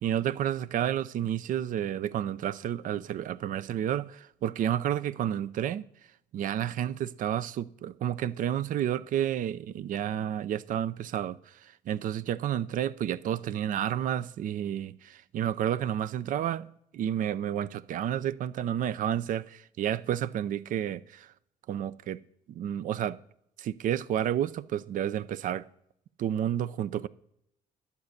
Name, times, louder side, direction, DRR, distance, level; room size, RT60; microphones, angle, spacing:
voice 1, 0.0-5.8 6.3-16.7 16.9-21.3 21.7-22.2 22.5-23.2 23.6-25.7 26.2-27.1, right 10 dB, 60° right, 0.5 m, -30 dB
11.5 x 5.3 x 8.1 m
cardioid pair, 105°, 15 cm